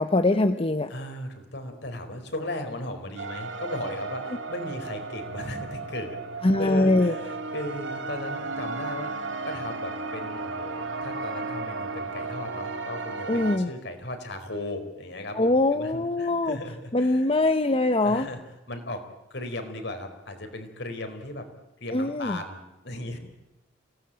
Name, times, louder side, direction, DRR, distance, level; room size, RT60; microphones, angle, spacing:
voice 1, 0.0-0.9 6.4-7.1 13.3-13.7 15.4-16.6 16.9-18.3 21.9-22.4, left 2 dB, 30° left, 9 dB, 0.9 m, -22 dB
voice 2, 0.9-6.2 6.6-17.3 18.0-18.4 18.7-19.0 19.3-21.5 21.8-23.2, left 1 dB, 65° left, 6 dB, 4.5 m, -36 dB
sound 1, 3.2-13.6, right 3 dB, 80° right, 2.5 m, -34 dB
28.0 x 18.0 x 8.9 m, 1.0 s
head